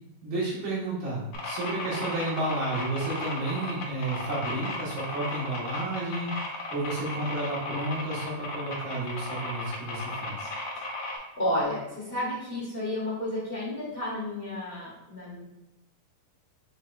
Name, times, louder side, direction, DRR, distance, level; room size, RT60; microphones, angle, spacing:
voice 1, 0.2-10.5, right 2 dB, 75° right, -7 dB, 3.1 m, -32 dB
sound 1, 1.3-11.2, left 2 dB, 85° left, 1.3 m, -35 dB
voice 2, 10.7-15.4, left 1 dB, 45° left, -8 dB, 0.7 m, -32 dB
7.2 x 2.9 x 2.4 m, 0.88 s
omnidirectional pair, 3.8 m